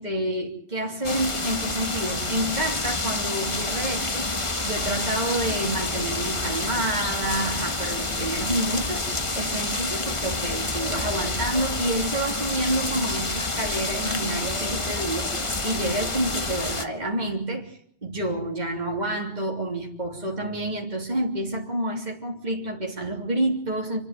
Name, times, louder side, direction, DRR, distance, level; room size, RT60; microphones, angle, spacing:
voice 1, 0.0-24.0, right 1 dB, 40° right, -1 dB, 3.5 m, -29 dB
sound 1, 1.0-16.9, left 2 dB, 30° left, 1.6 m, -28 dB
29.0 x 11.5 x 9.4 m, 0.68 s
omnidirectional pair, 1.1 m